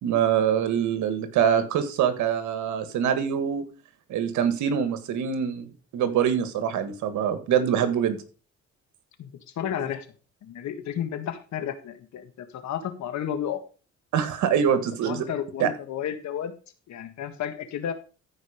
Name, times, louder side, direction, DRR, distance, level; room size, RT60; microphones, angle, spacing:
voice 1, 0.0-3.6 4.1-5.7 5.9-8.2 14.1-15.2 15.6-15.7, right 8 dB, 85° right, 10 dB, 1.8 m, -24 dB
voice 2, 9.2-10.1 10.4-13.6 14.5-16.5 16.9-17.9, left 9 dB, 70° left, 9 dB, 1.8 m, -32 dB
14.0 x 5.2 x 5.1 m, 0.36 s
cardioid pair, 95°, 29 cm